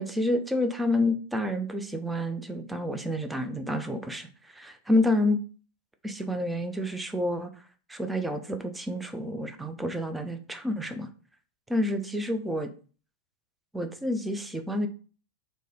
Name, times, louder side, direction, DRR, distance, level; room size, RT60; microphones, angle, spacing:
voice 1, 0.0-5.4 6.0-7.5 7.9-11.1 11.7-12.7 13.7-14.9, left 1 dB, 5° right, 6 dB, 0.5 m, -29 dB
3.2 x 2.6 x 3.6 m, 0.39 s
figure-of-eight pair, 90°, 0 cm